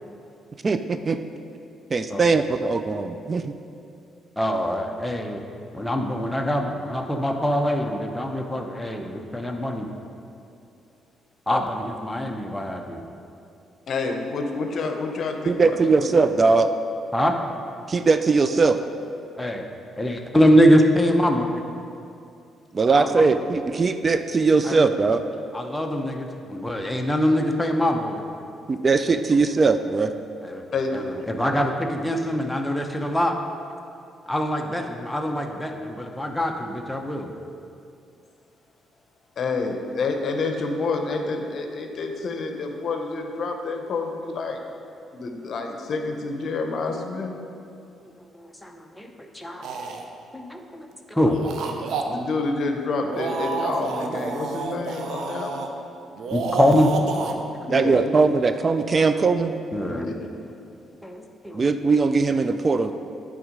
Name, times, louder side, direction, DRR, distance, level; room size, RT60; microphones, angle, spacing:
voice 1, 0.6-1.2 1.9-3.5 15.5-16.7 17.9-18.8 22.7-25.2 28.7-30.1 57.7-59.6 61.5-62.9, right 4 dB, 35° right, 9 dB, 0.3 m, -20 dB
voice 2, 4.4-5.4 5.7-9.9 11.5-13.0 17.1-17.4 19.4-19.7 20.0-21.6 22.9-23.2 24.6-24.9 25.5-28.2 30.4-30.6 30.9-33.4 34.3-37.3 48.0-49.7 50.3-51.4 56.3-56.9 57.2-57.5 59.7-60.1 61.0-61.6, equal, 5° left, 3 dB, 0.7 m, -24 dB
voice 3, 13.9-16.1 30.7-31.0 39.4-44.6 45.1-47.3 52.1-55.6 57.6-58.1 59.9-60.1, left 3 dB, 55° left, 4 dB, 0.8 m, -28 dB
sound 1, 49.6-50.0 51.2-52.0 52.9-55.7 56.2-57.3, right 4 dB, 70° right, 0.6 m, -30 dB
9.2 x 3.6 x 5.1 m, 2.6 s
cardioid pair, 90°, 0 cm